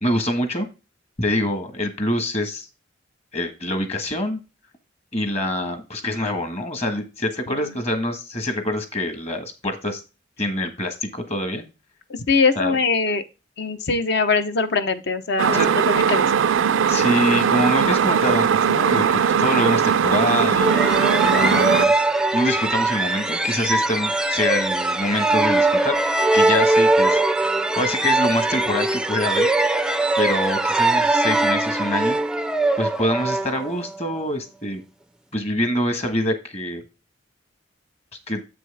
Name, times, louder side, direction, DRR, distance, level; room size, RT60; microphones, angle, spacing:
voice 1, 0.0-0.7 1.2-2.7 3.3-4.4 5.1-10.0 10.4-11.6 12.6-12.7 15.5-15.7 16.9-21.9 22.3-27.2 27.8-29.5 30.2-32.2 32.8-34.8 35.3-36.8 38.3-38.4, left 1 dB, 35° left, 8 dB, 1.5 m, -25 dB
voice 2, 12.1-13.2 13.6-16.3, left 4 dB, 60° left, 10 dB, 0.9 m, -22 dB
sound 1, 15.4-21.9, right 7 dB, 80° right, 0.4 m, -19 dB
sound 2, 20.6-34.1, right 2 dB, 5° right, 0.4 m, -21 dB
7.8 x 6.1 x 3.4 m, 0.29 s
head